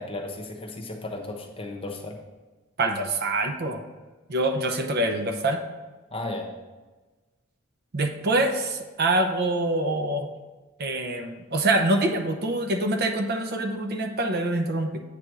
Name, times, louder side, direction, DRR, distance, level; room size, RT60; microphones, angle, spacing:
voice 1, 0.0-2.2 6.1-6.5, left 2 dB, 25° left, 1 dB, 1.0 m, -34 dB
voice 2, 2.8-3.8 4.3-5.6 7.9-10.3 10.8-15.0, right 2 dB, 50° right, 5 dB, 0.7 m, -25 dB
8.3 x 3.4 x 6.1 m, 1.2 s
head